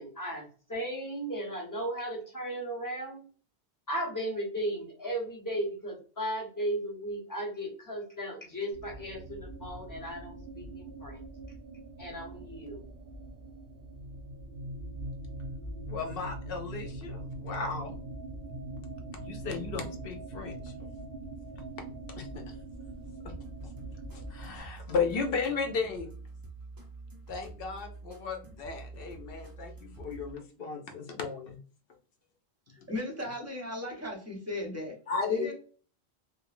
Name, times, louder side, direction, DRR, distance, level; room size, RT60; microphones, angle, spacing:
voice 1, 0.0-3.2 3.9-11.2 12.0-12.8, right 1 dB, 20° left, -1 dB, 0.8 m, -36 dB
sound 1, 8.7-24.6, right 1 dB, 60° right, 0.7 m, -42 dB
voice 2, 15.9-17.9 19.2-20.7 22.2-22.5 23.2-23.3 24.1-26.1 27.3-31.6 32.8-32.9 35.1-35.5, left 5 dB, 65° left, 4 dB, 0.7 m, -35 dB
sound 2, 23.2-30.3, right 3 dB, 30° right, 0.4 m, -47 dB
voice 3, 32.9-34.9 35.3-35.5, left 1 dB, 15° right, -1 dB, 0.8 m, -36 dB
3.1 x 2.1 x 2.4 m, 0.40 s
omnidirectional pair, 1.1 m